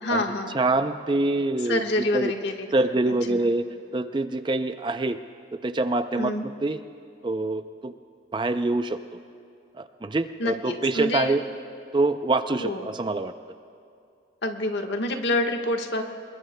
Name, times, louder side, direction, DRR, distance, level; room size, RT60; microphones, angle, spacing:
voice 1, 0.0-0.6 1.6-2.7 3.0-3.4 6.2-6.4 10.4-11.4 12.6-12.8 14.4-16.0, left 1 dB, 70° left, 3 dB, 1.3 m, -27 dB
voice 2, 0.5-1.8 2.1-2.3 2.7-3.7 3.9-5.2 5.6-6.8 7.2-7.9 8.3-9.0 9.8-11.4 11.9-13.3, right 2 dB, 25° right, 9 dB, 0.4 m, -25 dB
27.0 x 22.0 x 2.2 m, 2.5 s
head